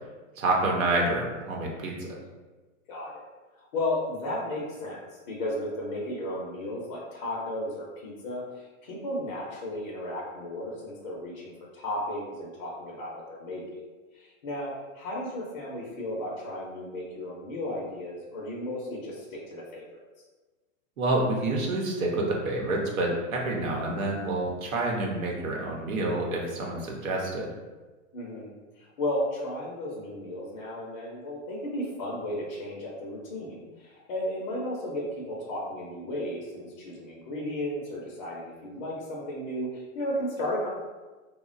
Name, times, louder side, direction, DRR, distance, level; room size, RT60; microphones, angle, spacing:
voice 1, 0.4-2.1 21.0-27.5, right 2 dB, 90° right, -2 dB, 0.9 m, -28 dB
voice 2, 2.9-3.2 3.6-13.8 14.1-20.0 28.1-40.7, left 1 dB, 35° left, -5 dB, 0.5 m, -34 dB
3.0 x 2.1 x 2.4 m, 1.2 s
hypercardioid pair, 150°, 40 cm